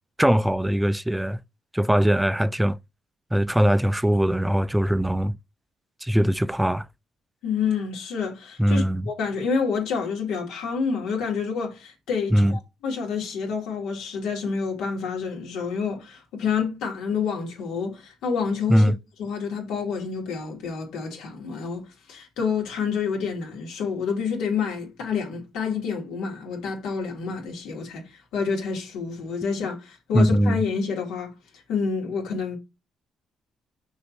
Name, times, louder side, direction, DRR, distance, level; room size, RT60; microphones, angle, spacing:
voice 1, 0.2-1.4 1.7-2.8 3.3-5.4 6.0-6.9 8.6-9.0 12.3-12.5 18.7-19.0 30.1-30.6, equal, 5° right, 0.4 m, -21 dB
voice 2, 7.4-18.9 19.2-31.3 31.7-32.6, left 5 dB, 90° left, 3.2 m, -28 dB
6.5 x 4.3 x 4.5 m
cardioid pair, 90°, 0 cm